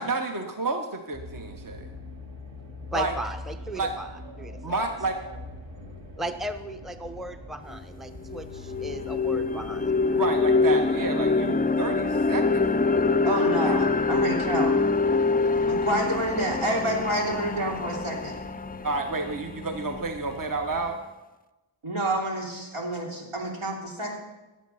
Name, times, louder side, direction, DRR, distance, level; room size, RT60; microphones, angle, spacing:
voice 1, 0.0-1.9 2.9-3.1 3.7-3.9 4.6-5.2 10.1-13.8 18.8-21.0, right 3 dB, 40° right, 5 dB, 1.0 m, -30 dB
sound 1, 1.1-21.0, left 1 dB, 60° right, 2.2 m, -44 dB
voice 2, 2.9-4.1 4.4-4.6 6.2-10.2, right 1 dB, ahead, 8 dB, 0.7 m, -36 dB
sound 2, 7.7-7.8 8.3-20.3, left 3 dB, 20° left, 0.4 m, -25 dB
voice 3, 13.2-14.7 15.5-18.3 21.8-24.2, right 1 dB, 80° right, -2 dB, 3.2 m, -28 dB
17.0 x 7.7 x 5.6 m, 1.1 s
cardioid pair, 45°, 49 cm